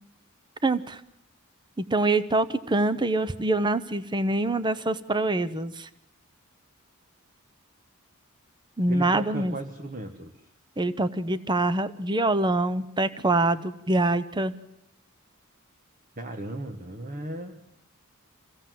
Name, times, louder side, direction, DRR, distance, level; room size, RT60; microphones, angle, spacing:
voice 1, 0.6-1.0 1.8-5.9 8.8-9.5 10.8-14.5, right 2 dB, 20° right, 13 dB, 0.7 m, -25 dB
voice 2, 8.9-10.3 16.2-17.6, right 2 dB, 40° right, 6 dB, 1.4 m, -36 dB
26.0 x 16.5 x 7.6 m, 0.85 s
head